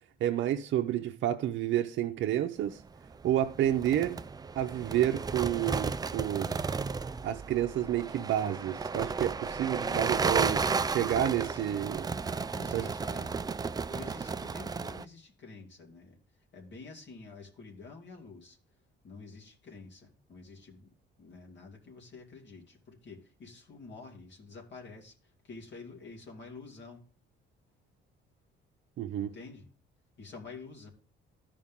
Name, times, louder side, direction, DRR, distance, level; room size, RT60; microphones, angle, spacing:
voice 1, 0.2-2.8 3.2-4.2 4.6-6.5 7.2-10.6 10.9-12.0 12.7-12.9 29.0-29.3, right 12 dB, 70° right, 0.7 m, -30 dB
sound 1, 3.1-15.0, right 4 dB, 20° right, 0.3 m, -33 dB
voice 2, 9.8-12.1 12.5-13.5 13.9-16.2 16.5-18.6 19.0-20.9 21.2-27.0 29.2-29.6 30.2-30.9, left 4 dB, 65° left, 2.6 m, -48 dB
13.0 x 5.0 x 3.6 m
cardioid pair, 90°, 20 cm